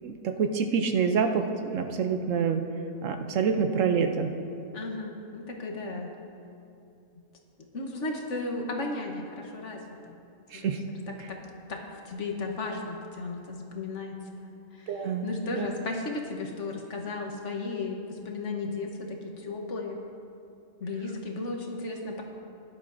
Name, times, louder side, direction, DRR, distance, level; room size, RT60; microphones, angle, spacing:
voice 1, 0.0-2.6 3.0-4.3 10.5-10.8 11.2-11.3 14.9-15.7, right 6 dB, 65° right, 6 dB, 0.9 m, -27 dB
voice 2, 4.7-6.1 7.7-9.8 10.5-10.7 11.3-11.4 11.7-14.2 14.4-14.5 14.8-14.9 15.2-20.0 20.8-22.2, left 3 dB, 55° left, 1 dB, 1.3 m, -34 dB
17.0 x 11.0 x 2.6 m, 2.6 s
omnidirectional pair, 1.5 m